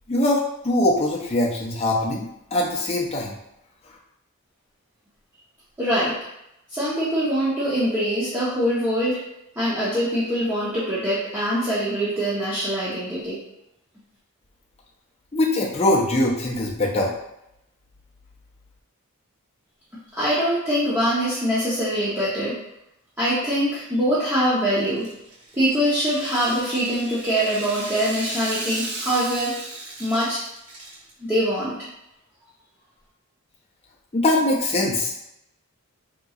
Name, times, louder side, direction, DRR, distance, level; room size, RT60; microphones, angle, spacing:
voice 1, 0.1-3.4 15.3-17.1 34.1-35.1, left 1 dB, 30° left, -4 dB, 0.6 m, -22 dB
voice 2, 5.8-6.1 6.7-9.2 9.6-13.4 20.1-22.6 23.2-25.1 25.5-29.5 30.0-30.4 31.2-31.9, equal, 10° right, -11 dB, 0.7 m, -23 dB
Rattle (instrument), 24.9-31.1, right 2 dB, 80° right, 1.3 m, -36 dB
3.7 x 2.9 x 2.4 m, 0.84 s
head